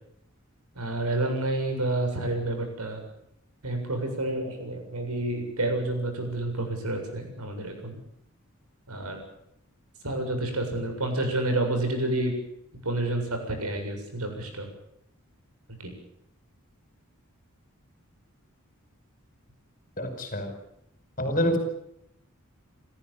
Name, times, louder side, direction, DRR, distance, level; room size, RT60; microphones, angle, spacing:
voice 1, 0.8-3.0 3.6-8.0 8.9-9.2 10.0-12.3 12.8-14.7 15.8-15.9, right 2 dB, 85° right, 4 dB, 7.4 m, -29 dB
voice 2, 20.0-20.5 21.2-21.6, equal, 35° left, 7 dB, 5.4 m, -26 dB
29.5 x 14.0 x 8.8 m, 0.77 s
head